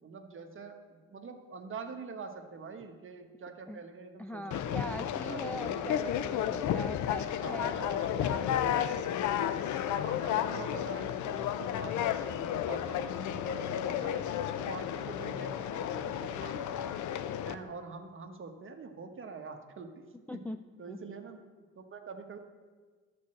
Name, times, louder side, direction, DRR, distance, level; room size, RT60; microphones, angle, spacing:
voice 1, 0.0-5.8 7.4-8.3 10.0-14.2 14.6-17.0 17.4-20.4 20.8-21.4 21.7-22.4, right 4 dB, 45° right, 5 dB, 1.2 m, -45 dB
voice 2, 4.2-9.0 20.3-20.6 20.9-21.0, left 1 dB, 5° left, 7 dB, 0.3 m, -42 dB
Conversation, 4.5-17.6, left 10 dB, 75° left, 0.6 m, -32 dB
11.5 x 4.4 x 7.7 m, 1.4 s
cardioid pair, 90°, 30 cm